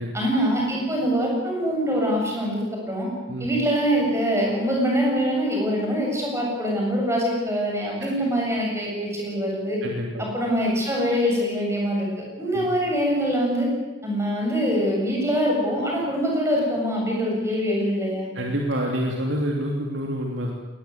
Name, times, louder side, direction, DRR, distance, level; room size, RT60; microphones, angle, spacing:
voice 1, 0.1-3.1 3.4-9.8 10.2-13.7 14.0-18.3, equal, 15° right, -1 dB, 7.6 m, -24 dB
voice 2, 9.8-10.2 12.4-12.7 18.3-20.5, equal, 65° right, 0 dB, 2.9 m, -27 dB
21.5 x 19.5 x 9.5 m, 1.2 s
head